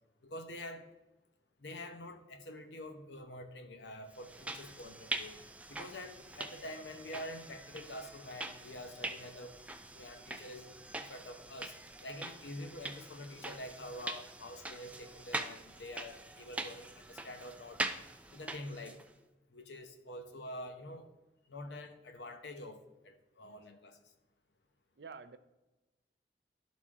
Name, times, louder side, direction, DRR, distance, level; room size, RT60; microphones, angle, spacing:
voice 1, 0.2-0.9 1.6-5.4 5.7-9.6 9.9-11.8 12.0-17.8 18.3-19.0 19.5-21.1 21.5-24.0, left 1 dB, 80° left, 7 dB, 0.9 m, -47 dB
sound 1, 4.1-19.1, right 2 dB, 10° right, 0.3 m, -43 dB
voice 2, 25.0-25.4, right 5 dB, 65° right, 11 dB, 0.5 m, -50 dB
12.5 x 4.1 x 3.6 m, 1.1 s
head